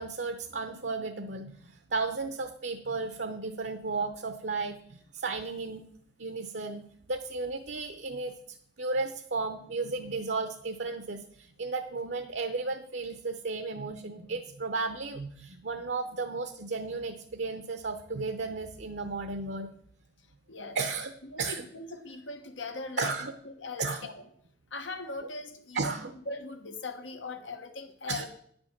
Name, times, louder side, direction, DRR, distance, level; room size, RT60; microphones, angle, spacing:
voice 1, 0.0-5.8 6.2-6.8 7.1-8.3 8.8-19.7 20.7-21.1 21.4-21.6 23.0-23.3 23.8-24.1 25.2-25.3 25.7-26.2 28.1-28.3, right 3 dB, 65° right, 7 dB, 0.7 m, -34 dB
voice 2, 21.2-23.1 23.4-24.2 24.7-26.0 26.3-28.3, left 3 dB, 90° left, 7 dB, 1.4 m, -40 dB
10.0 x 5.3 x 7.3 m, 0.65 s
head